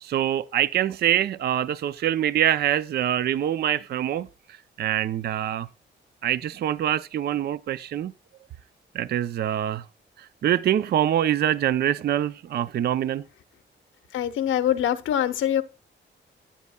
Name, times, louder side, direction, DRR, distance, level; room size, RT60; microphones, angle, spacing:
voice 1, 0.0-4.3 4.8-5.7 6.2-8.1 8.9-9.8 10.2-13.2, right 11 dB, 55° right, 0.4 m, -24 dB
voice 2, 14.1-15.6, left 10 dB, 90° left, 0.8 m, -24 dB
14.5 x 8.4 x 2.2 m
cardioid pair, 120°, 20 cm